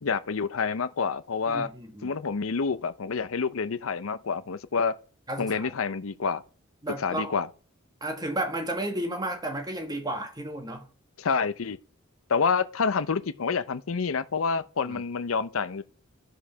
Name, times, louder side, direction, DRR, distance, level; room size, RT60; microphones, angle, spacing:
voice 1, 0.0-1.7 2.0-5.0 5.4-6.4 7.0-7.5 11.2-11.8 12.3-15.8, left 5 dB, 85° left, 0.6 m, -28 dB
voice 2, 1.5-2.1 5.3-5.7 6.8-7.3 8.0-10.9 14.8-15.0, right 1 dB, 20° right, 1.6 m, -33 dB
13.0 x 5.0 x 5.7 m
head